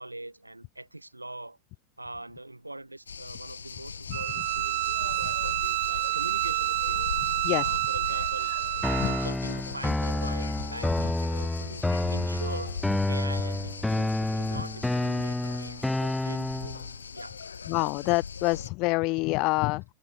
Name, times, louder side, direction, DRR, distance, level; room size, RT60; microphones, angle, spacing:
voice 1, 0.0-1.6 2.0-17.4, right 2 dB, 85° right, 2.5 m, -42 dB
sound 1, 3.1-18.7, left 6 dB, 75° left, 1.1 m, -39 dB
Bowed string instrument, 4.1-9.3, right 21 dB, 50° right, 0.9 m, -28 dB
sound 2, 8.8-16.8, left 2 dB, 5° left, 1.2 m, -29 dB
voice 2, 17.7-19.8, left 25 dB, 40° left, 0.7 m, -26 dB
open air
figure-of-eight pair, 90°, 0 cm